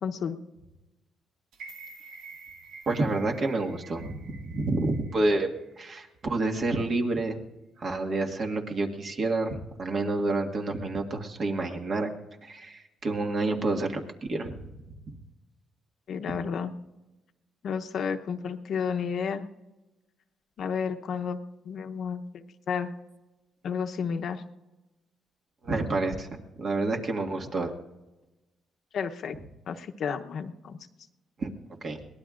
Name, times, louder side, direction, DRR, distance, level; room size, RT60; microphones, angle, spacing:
voice 1, 0.0-0.4 16.1-16.7 17.6-19.5 20.6-21.4 21.6-22.9 23.6-24.4 28.9-29.4 29.7-30.8, left 6 dB, 65° left, 6 dB, 0.9 m, -31 dB
sound 1, 1.5-5.7 6.0-6.1, right 4 dB, 85° right, 1.2 m, -48 dB
voice 2, 2.9-5.5 5.8-7.4 7.8-12.1 12.4-14.6 25.6-27.7 31.4-31.5 31.8-32.0, right 2 dB, 50° right, 2 dB, 1.9 m, -29 dB
22.5 x 18.5 x 2.5 m, 1.1 s
cardioid pair, 90°, 0 cm